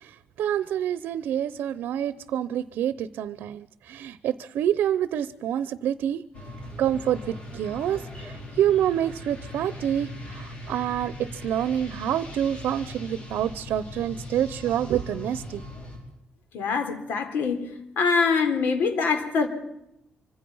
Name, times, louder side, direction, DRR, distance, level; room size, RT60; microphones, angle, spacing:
voice 1, 0.0-6.2 6.8-15.6, right 10 dB, 85° right, 16 dB, 0.8 m, -27 dB
sound 1, 6.3-16.0, left 1 dB, 35° left, 6.0 m, -40 dB
voice 2, 16.5-17.7 18.0-19.5, left 5 dB, 75° left, 8 dB, 3.7 m, -24 dB
25.5 x 25.5 x 5.6 m, 0.84 s
cardioid pair, 170°, 3 cm